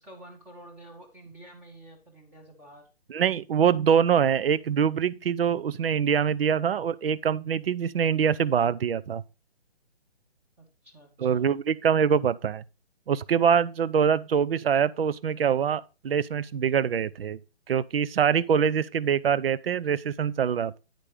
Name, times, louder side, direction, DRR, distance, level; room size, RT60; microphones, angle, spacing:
voice 1, 0.0-2.9 10.6-11.6, right 1 dB, 5° right, 0.8 m, -49 dB
voice 2, 3.1-9.2 11.2-12.6 13.1-17.4 17.7-20.8, right 7 dB, 65° right, 0.6 m, -24 dB
9.1 x 5.2 x 4.8 m
hypercardioid pair, 155°, 32 cm